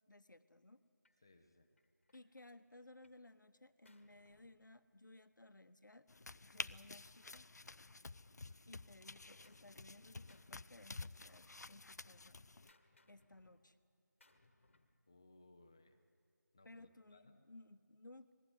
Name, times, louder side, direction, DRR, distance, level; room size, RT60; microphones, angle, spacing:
voice 1, 0.1-0.8 2.1-6.1 6.4-7.5 8.7-12.4 13.1-13.8 16.6-18.3, left 2 dB, 85° left, 11 dB, 1.2 m, -60 dB
Gunshot gunfire, 1.0-1.2 1.8-3.3 3.6-5.3 6.2-8.0 8.4-10.0 10.3-11.5 11.8-15.0, left 2 dB, 40° left, 1.4 m, -74 dB
voice 2, 1.2-1.7 15.1-16.0 16.5-17.4, left 2 dB, 15° left, 7 dB, 0.7 m, -65 dB
sound 1, 6.1-12.7, left 3 dB, 60° left, 0.5 m, -51 dB
20.5 x 14.5 x 9.9 m, 2.2 s
figure-of-eight pair, 175°, 10 cm